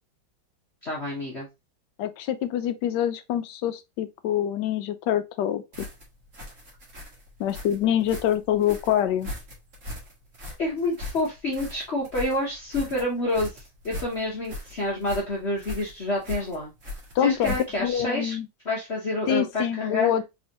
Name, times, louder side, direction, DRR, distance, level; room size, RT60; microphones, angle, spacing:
voice 1, 0.8-1.5 10.6-16.7 17.2-18.3 18.6-20.1, left 1 dB, 45° left, 1.1 m, -28 dB
voice 2, 2.0-5.9 7.4-9.3 17.1-18.5 19.3-20.2, left 10 dB, 70° left, 1.2 m, -25 dB
sound 1, 5.7-18.0, left 2 dB, 45° right, 1.7 m, -39 dB
4.0 x 3.6 x 3.0 m
omnidirectional pair, 2.0 m